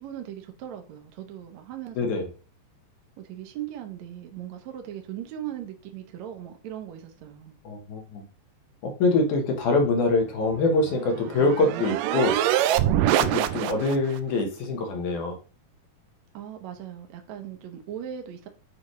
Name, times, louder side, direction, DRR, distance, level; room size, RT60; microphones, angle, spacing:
voice 1, 0.0-2.3 3.2-7.5 16.3-18.5, right 10 dB, 70° right, 5 dB, 2.0 m, -39 dB
voice 2, 7.7-8.2 8.8-12.4 13.2-15.4, left 3 dB, 70° left, 3 dB, 2.7 m, -24 dB
sound 1, 10.6-14.2, right 12 dB, 90° right, 2.2 m, -25 dB
8.8 x 5.1 x 3.1 m, 0.37 s
omnidirectional pair, 3.7 m